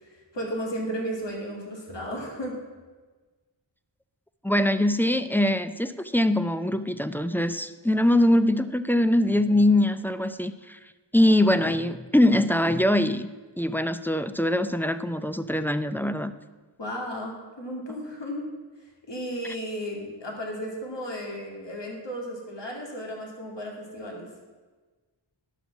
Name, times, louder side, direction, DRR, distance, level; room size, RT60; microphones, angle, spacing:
voice 1, 0.0-2.6 16.8-18.5 19.1-24.3, equal, 65° left, -1 dB, 2.4 m, -34 dB
voice 2, 4.4-10.8 11.1-13.3 13.6-16.3, left 1 dB, 5° left, 11 dB, 0.4 m, -23 dB
11.0 x 6.2 x 7.1 m, 1.3 s
wide cardioid pair, 60°, 46 cm